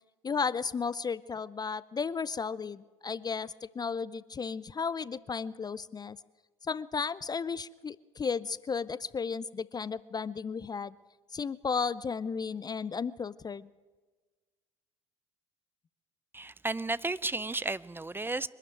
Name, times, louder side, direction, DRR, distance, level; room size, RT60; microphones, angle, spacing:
voice 1, 0.2-6.2 6.6-10.9 11.3-13.7, left 5 dB, 25° left, 19 dB, 0.5 m, -34 dB
voice 2, 16.3-18.5, right 2 dB, 15° right, 17 dB, 0.7 m, -33 dB
24.0 x 12.5 x 9.2 m, 1.3 s
hypercardioid pair, 65°, 16 cm